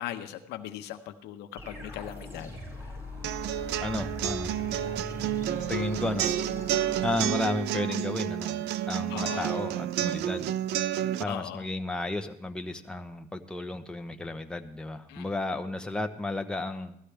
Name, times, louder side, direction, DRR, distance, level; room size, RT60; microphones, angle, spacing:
voice 1, 0.0-2.6 9.1-9.5 11.3-11.7 15.1-15.3, left 12 dB, 85° left, 8 dB, 0.9 m, -39 dB
sound 1, 1.6-8.0, left 2 dB, 15° right, 5.9 m, -41 dB
sound 2, 3.2-11.2, right 11 dB, 80° right, 0.5 m, -30 dB
voice 2, 3.8-4.5 5.7-6.3 7.0-10.5 10.9-17.0, left 2 dB, 5° left, 5 dB, 0.9 m, -33 dB
17.0 x 13.0 x 3.4 m, 0.71 s
cardioid pair, 110°, 17 cm